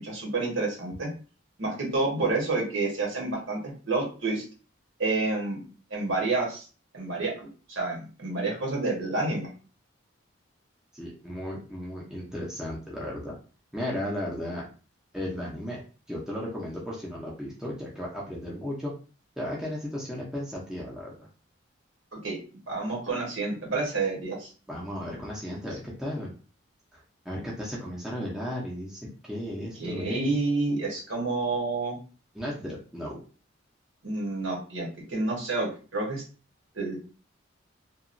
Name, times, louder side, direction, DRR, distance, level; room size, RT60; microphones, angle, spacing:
voice 1, 0.0-1.1 1.6-4.4 5.0-5.6 5.9-6.6 6.9-9.5 22.2-24.5 29.8-32.0 34.0-36.2 36.7-37.0, right 3 dB, 75° right, -1 dB, 1.1 m, -29 dB
voice 2, 10.9-13.4 13.7-14.7 15.1-15.8 16.1-18.9 19.4-21.3 24.7-26.3 26.9-30.3 32.3-33.2, left 1 dB, 5° right, -5 dB, 0.5 m, -35 dB
2.8 x 2.3 x 2.5 m, 0.36 s
head